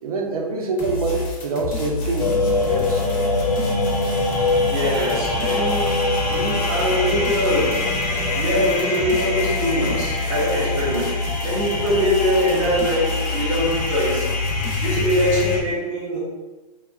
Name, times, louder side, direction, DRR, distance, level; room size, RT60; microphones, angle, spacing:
voice 1, 0.0-2.3 2.6-3.1, right 3 dB, 65° right, 2 dB, 0.5 m, -25 dB
sound 1, 0.8-15.6, left 2 dB, 35° left, 0.5 m, -28 dB
sound 2, 2.2-15.6, left 2 dB, 80° left, 0.7 m, -25 dB
voice 2, 4.7-6.0 6.3-7.8 8.2-14.3 14.8-16.2, equal, 20° right, -5 dB, 0.5 m, -23 dB
2.8 x 2.2 x 2.4 m, 1.3 s
hypercardioid pair, 155°, 20 cm